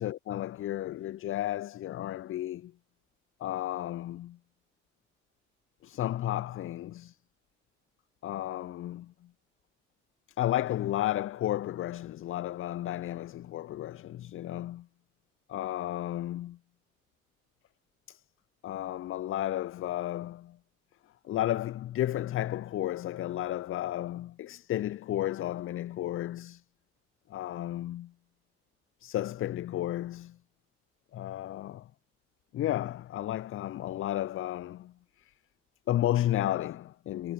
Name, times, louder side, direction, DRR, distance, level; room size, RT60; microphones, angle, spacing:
voice 1, 0.0-2.7 3.4-4.4 5.8-7.2 8.2-9.1 10.4-14.9 15.5-16.6 18.1-18.2 18.6-20.6 21.2-26.6 27.3-28.1 29.0-30.4 31.1-31.9 32.5-34.9 35.2-35.3 35.9-37.3, left 13 dB, 40° left, 0.4 m, -33 dB
hypercardioid pair, 50°, 36 cm